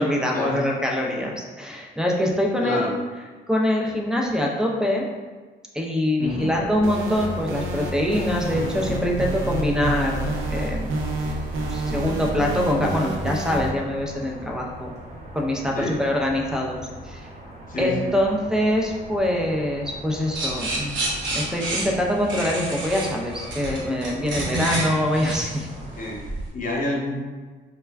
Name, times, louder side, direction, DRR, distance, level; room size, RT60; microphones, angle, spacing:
voice 1, 0.0-2.8 3.5-5.1 5.7-10.9 11.7-14.9 15.3-16.8 17.0-17.3 17.8-21.0 21.3-25.7, left 1 dB, 5° right, 0 dB, 0.4 m, -24 dB
voice 2, 2.6-2.9 6.2-6.6 15.7-16.0 17.7-18.1 25.9-26.2 26.5-27.2, left 2 dB, 45° left, -2 dB, 0.7 m, -27 dB
sound 1, 6.2-26.1, right 1 dB, 35° right, 0.8 m, -41 dB
sound 2, 6.8-13.7, right 1 dB, 90° right, 0.5 m, -29 dB
sound 3, 20.3-26.5, right 2 dB, 70° right, 0.8 m, -29 dB
2.3 x 2.2 x 3.3 m, 1.4 s
cardioid pair, 90°, 20 cm